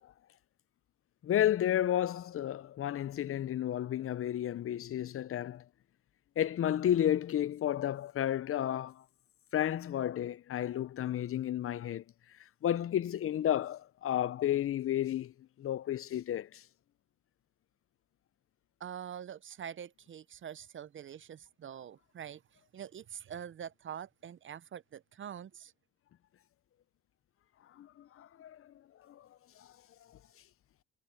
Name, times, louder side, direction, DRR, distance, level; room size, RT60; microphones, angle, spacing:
voice 1, 1.2-5.6 6.4-9.0 9.5-12.0 12.6-15.3 15.6-16.6 27.8-28.7 29.1-29.3 29.6-29.7, left 11 dB, 45° left, 0.6 m, -32 dB
voice 2, 18.8-22.4 22.7-25.7, right 9 dB, 40° right, 0.5 m, -45 dB
cardioid pair, 90°, 30 cm